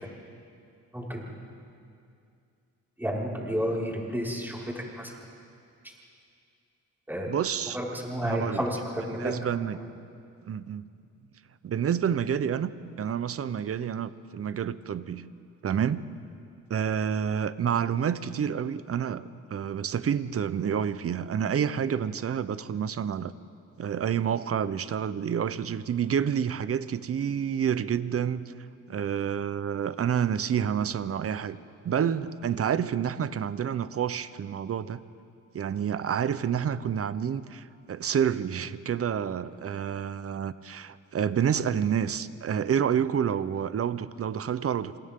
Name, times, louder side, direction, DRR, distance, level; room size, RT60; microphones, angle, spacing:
voice 1, 3.0-4.6 4.9-5.1 7.1-7.3 7.7-9.3, equal, 5° right, -4 dB, 5.4 m, -31 dB
voice 2, 7.3-7.8 8.2-8.6 9.2-9.8 10.5-10.9 11.6-12.7 13.0-15.3 15.6-16.0 16.7-23.3 23.8-28.5 28.9-31.6 31.8-35.0 35.5-45.0, right 8 dB, 45° right, 15 dB, 0.9 m, -28 dB
28.5 x 27.0 x 3.8 m, 2.5 s
cardioid pair, 80°, 31 cm